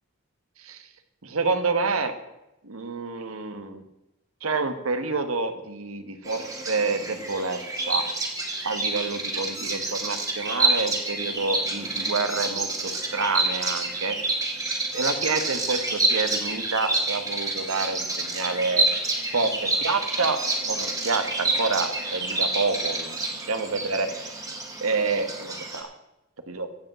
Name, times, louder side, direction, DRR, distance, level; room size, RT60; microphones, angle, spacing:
voice 1, 1.2-2.1 2.6-3.8 4.4-8.1 8.6-14.2 14.4-18.9 19.3-20.4 20.7-24.4 24.8-25.9 26.5-26.7, right 4 dB, 85° right, 9 dB, 1.3 m, -28 dB
Bird vocalization bird call bird song, 6.2-25.8, right 3 dB, 15° right, 1.7 m, -28 dB
15.5 x 5.6 x 7.3 m, 0.94 s
head